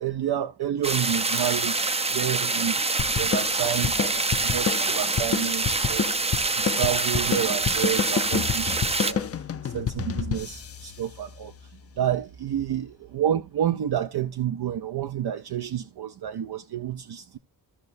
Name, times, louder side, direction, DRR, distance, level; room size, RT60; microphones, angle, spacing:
voice 1, 0.0-2.8 3.2-6.1 6.5-9.2 9.6-11.5 12.0-17.4, right 10 dB, 65° right, 0.6 m, -29 dB
sound 1, 0.8-9.1, right 3 dB, 15° right, 0.5 m, -26 dB
sound 2, 3.0-11.8, left 7 dB, 35° left, 0.6 m, -30 dB
15.5 x 5.4 x 2.6 m
wide cardioid pair, 100°, 41 cm